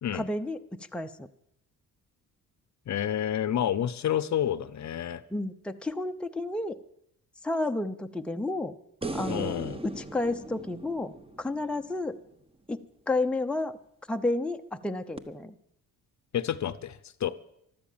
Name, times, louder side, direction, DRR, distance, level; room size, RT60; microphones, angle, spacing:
voice 1, 0.1-0.6 0.9-1.3 5.3-6.8 7.4-8.7 9.1-9.6 9.8-12.2 12.7-13.8 14.1-15.5, left 2 dB, 5° left, 6 dB, 0.7 m, -31 dB
voice 2, 2.9-5.2 9.3-9.8 16.3-17.3, left 10 dB, 50° left, 13 dB, 0.8 m, -29 dB
sound 1, 9.0-12.3 15.2-15.3, right 2 dB, 15° right, 1.1 m, -38 dB
13.0 x 12.5 x 7.4 m, 0.76 s
cardioid pair, 90°, 36 cm